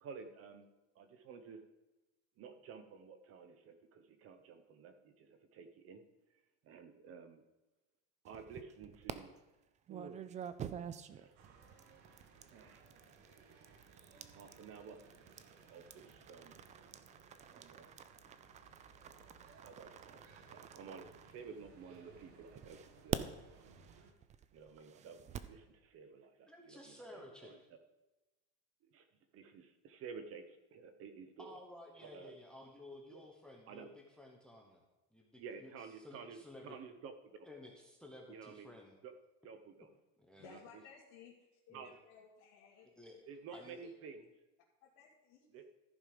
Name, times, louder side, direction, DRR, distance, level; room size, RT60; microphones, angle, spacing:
voice 1, 0.0-0.7 0.9-1.6 2.4-6.0 6.6-7.4 8.2-9.4 9.9-10.2 11.1-11.4 12.5-12.9 14.3-15.0 15.7-16.6 17.5-17.9 19.6-23.2 24.5-27.6 28.9-29.1 29.3-31.6 32.0-32.3 33.1-33.3 33.7-33.9 35.4-37.1 38.3-38.7 39.0-39.1 39.4-39.9 40.5-40.6 41.7-41.9 43.3-44.2 45.5-45.6, right 6 dB, 40° right, 9 dB, 0.9 m, -52 dB
sound 1, 8.3-9.1 9.9-21.9 22.6-25.6, right 9 dB, 20° right, 0.3 m, -47 dB
sound 2, 11.4-24.1, right 4 dB, 75° right, 1.7 m, -62 dB
voice 2, 26.5-27.5 31.4-34.8 35.1-36.8 37.4-37.7 38.0-39.0 40.2-40.4 41.7-42.0 43.0-43.2 43.5-43.8, left 1 dB, ahead, 1 dB, 1.0 m, -54 dB
voice 3, 40.4-41.3 41.7-43.9 44.8-45.5, left 7 dB, 60° left, -5 dB, 2.1 m, -59 dB
14.0 x 5.4 x 5.1 m, 1.1 s
cardioid pair, 145°, 35 cm